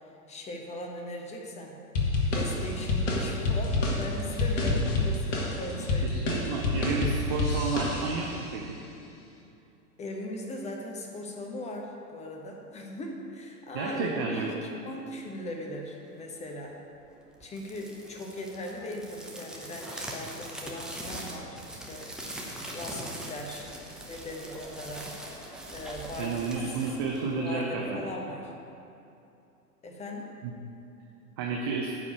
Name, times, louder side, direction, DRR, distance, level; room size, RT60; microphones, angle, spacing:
voice 1, 0.3-1.8 2.2-6.3 10.0-16.8 17.4-22.1 22.7-23.7 24.0-25.1 25.7-26.4 27.4-28.5 29.8-30.4, left 1 dB, 15° left, 1 dB, 1.1 m, -39 dB
sound 1, 1.9-8.4, left 2 dB, 50° left, 1.8 m, -28 dB
voice 2, 6.0-8.8 13.7-14.5 26.2-28.0 30.4-30.5 31.4-31.9, right 5 dB, 20° right, -1 dB, 0.3 m, -31 dB
sound 2, 17.4-27.8, right 1 dB, ahead, 0.8 m, -41 dB
9.9 x 4.8 x 7.9 m, 2.7 s
figure-of-eight pair, 100°, 47 cm